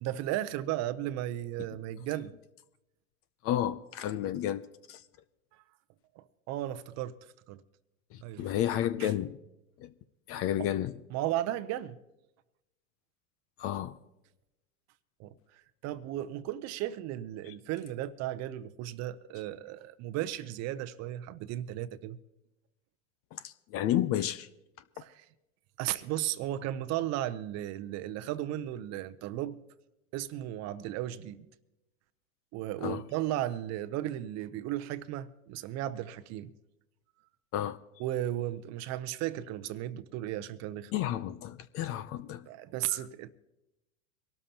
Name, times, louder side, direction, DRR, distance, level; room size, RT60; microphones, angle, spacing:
voice 1, 0.0-2.3 6.2-7.1 7.5-7.6 8.2-8.5 9.0-9.1 10.6-10.7 11.1-12.0 15.2-15.3 15.8-22.2 25.0-25.1 25.8-29.6 30.1-31.5 32.5-36.5 38.0-40.9 42.5-43.3, right 13 dB, 40° right, 0.7 m, -35 dB
voice 2, 3.4-5.0 8.1-9.4 9.8-9.9 10.3-11.0 13.6-14.0 17.5-17.6 23.3-24.5 32.8-33.0 37.5-37.8 40.9-42.5 42.9-43.1, left 11 dB, 35° left, 0.5 m, -32 dB
24.0 x 12.5 x 2.9 m
hypercardioid pair, 105°, 43 cm